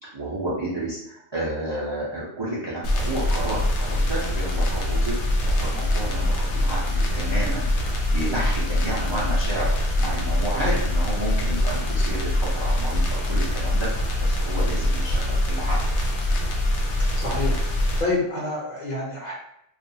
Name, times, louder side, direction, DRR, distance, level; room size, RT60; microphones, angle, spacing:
voice 1, 0.0-5.1 5.4-15.8, right 1 dB, 35° right, -8 dB, 0.4 m, -31 dB
sound 1, 2.8-18.0, left 1 dB, 85° left, 0.9 m, -23 dB
voice 2, 17.0-19.3, left 2 dB, 45° left, -5 dB, 0.9 m, -28 dB
2.4 x 2.3 x 2.7 m, 0.76 s
omnidirectional pair, 1.1 m